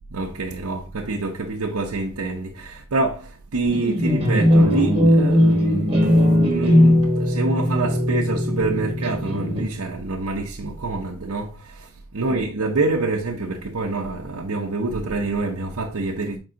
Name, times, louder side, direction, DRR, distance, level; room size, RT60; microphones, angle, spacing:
voice 1, 0.1-16.4, right 3 dB, 85° right, 0.8 m, -26 dB
sound 1, 3.6-9.9, left 1 dB, 25° right, 1.6 m, -19 dB
7.6 x 4.5 x 2.8 m
head